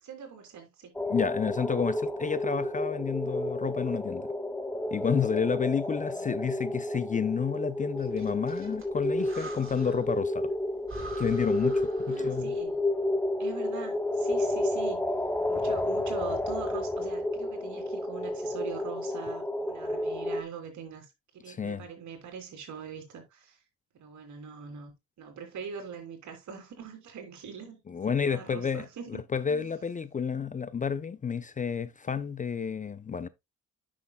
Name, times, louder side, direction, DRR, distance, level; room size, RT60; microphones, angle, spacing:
voice 1, 0.0-0.9 6.1-6.3 12.1-12.8 13.4-15.0 15.5-21.1 21.4-23.6 23.9-24.9 25.2-27.8 28.1-29.2 29.5-29.7, right 6 dB, 70° right, 3.1 m, -42 dB
sound 1, 0.9-20.4, left 1 dB, 5° left, 0.9 m, -31 dB
voice 2, 1.1-4.3 4.9-10.5 11.2-12.5 21.5-21.8 27.9-28.9 29.3-33.3, left 6 dB, 25° left, 0.5 m, -30 dB
Breathing, 8.0-10.2 10.5-10.6 10.9-12.5, right 3 dB, 45° right, 2.8 m, -45 dB
9.4 x 6.3 x 2.2 m
cardioid pair, 90°, 30 cm